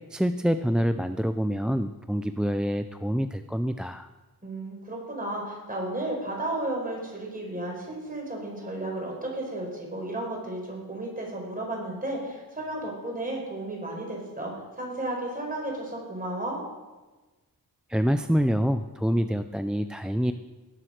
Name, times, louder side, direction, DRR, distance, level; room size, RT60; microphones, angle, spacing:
voice 1, 0.1-4.1 17.9-20.3, equal, ahead, 9 dB, 0.3 m, -26 dB
voice 2, 4.4-16.6, right 1 dB, 20° right, -1 dB, 4.8 m, -33 dB
18.0 x 7.7 x 6.4 m, 1.2 s
wide cardioid pair, 130°, 37 cm